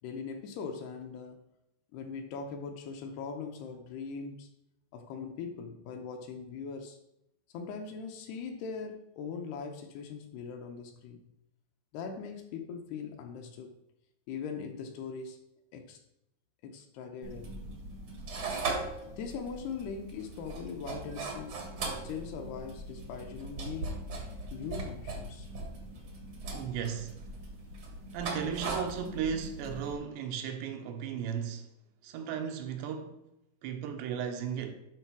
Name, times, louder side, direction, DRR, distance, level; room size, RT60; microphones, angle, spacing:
voice 1, 0.0-1.4 1.9-4.5 4.9-7.0 7.5-11.3 11.9-13.8 14.3-15.4 15.7-16.0 16.6-17.6 19.2-21.7 22.0-24.1 24.5-25.5, left 5 dB, 75° left, 2.6 m, -41 dB
sound 1, 17.2-29.9, right 3 dB, 70° right, 1.3 m, -39 dB
voice 2, 26.5-27.2 28.1-31.7 32.0-33.2 33.6-34.7, right 7 dB, 85° right, 2.9 m, -35 dB
10.0 x 3.9 x 5.9 m
omnidirectional pair, 5.0 m